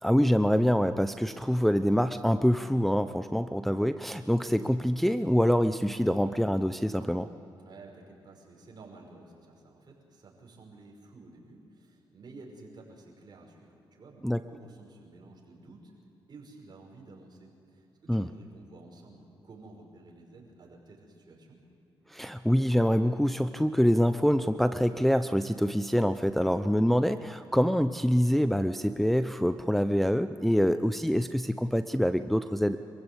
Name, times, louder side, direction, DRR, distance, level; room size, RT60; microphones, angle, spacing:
voice 1, 0.0-7.3 14.2-14.4 18.1-18.3 22.1-32.8, equal, ahead, 10 dB, 0.7 m, -25 dB
voice 2, 7.6-15.9 16.3-21.6, right 3 dB, 50° right, -1 dB, 5.9 m, -52 dB
26.0 x 15.5 x 8.2 m, 2.9 s
cardioid pair, 65°, 9 cm